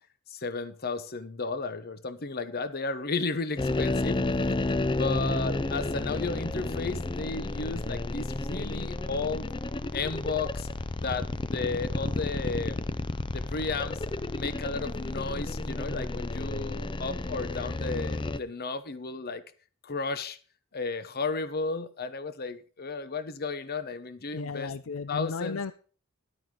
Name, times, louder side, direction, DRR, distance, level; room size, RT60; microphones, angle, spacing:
voice 1, 0.3-4.2 4.9-9.4 9.9-10.7 11.0-12.8 13.3-14.0 14.3-19.4 19.8-20.4 20.7-24.7 25.1-25.6, left 4 dB, 50° left, 13 dB, 1.0 m, -33 dB
sound 1, 3.6-18.4, left 2 dB, 25° left, 0.5 m, -31 dB
voice 2, 24.3-25.7, left 4 dB, 85° left, 13 dB, 0.6 m, -35 dB
13.5 x 11.5 x 3.8 m, 0.39 s
head